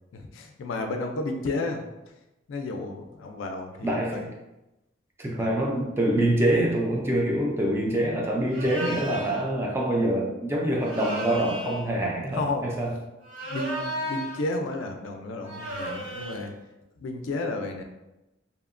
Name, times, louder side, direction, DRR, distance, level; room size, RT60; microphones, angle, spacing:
voice 1, 0.1-1.8 2.5-4.3 5.4-5.5 12.3-12.7 13.5-16.5 17.0-17.8, left 2 dB, 80° left, 4 dB, 0.4 m, -32 dB
voice 2, 3.8-4.3 5.2-13.0, right 1 dB, 10° right, -2 dB, 0.3 m, -25 dB
sound 1, 8.5-9.4 10.8-11.9 13.2-14.5 15.4-16.5, right 1 dB, 70° right, 0.7 m, -34 dB
2.8 x 2.1 x 2.4 m, 0.96 s
head